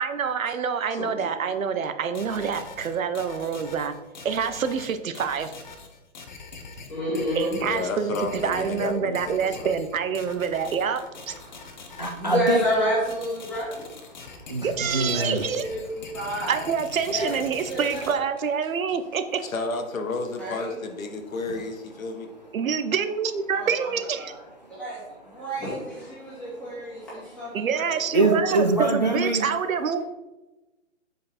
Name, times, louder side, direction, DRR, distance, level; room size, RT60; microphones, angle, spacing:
voice 1, 0.0-3.9 4.2-5.5 7.3-11.4 14.6-15.7 16.5-19.4 22.5-24.3 27.5-30.0, right 6 dB, 85° right, 10 dB, 0.9 m, -27 dB
voice 2, 0.9-1.3 7.6-9.2 9.5-9.7 19.4-22.3, left 3 dB, 85° left, 5 dB, 1.4 m, -31 dB
sound 1, 2.1-18.1, left 4 dB, 35° left, 0.8 m, -43 dB
voice 3, 6.8-7.6 12.2-13.8 14.8-16.6 17.1-17.4 17.7-18.0 20.4-20.7 23.5-24.3 24.8-28.3, equal, 5° left, -9 dB, 2.0 m, -30 dB
voice 4, 11.4-12.6 14.1-15.4 21.4-21.6 24.6-24.7 26.2-26.6 28.1-29.5, right 2 dB, 35° right, 2 dB, 0.4 m, -25 dB
7.1 x 5.2 x 4.3 m, 1.1 s
hypercardioid pair, 170°, 40 cm